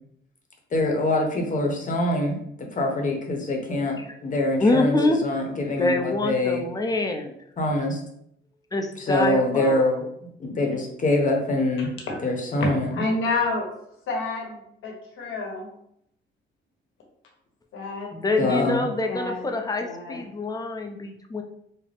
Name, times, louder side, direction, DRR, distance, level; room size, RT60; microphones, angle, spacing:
voice 1, 0.7-6.6 7.6-8.0 9.0-10.0 10.4-11.9 12.2-12.9 18.4-18.9, left 2 dB, 40° left, 2 dB, 0.9 m, -24 dB
voice 2, 4.6-5.2 5.8-7.3 8.7-9.8 18.1-21.4, left 2 dB, 20° left, 4 dB, 0.5 m, -25 dB
voice 3, 12.6-13.7 14.1-15.7 17.7-18.8 19.1-19.5 19.8-20.3, left 3 dB, 85° left, 0 dB, 1.1 m, -29 dB
3.9 x 2.1 x 3.4 m, 0.73 s
cardioid pair, 90°, 20 cm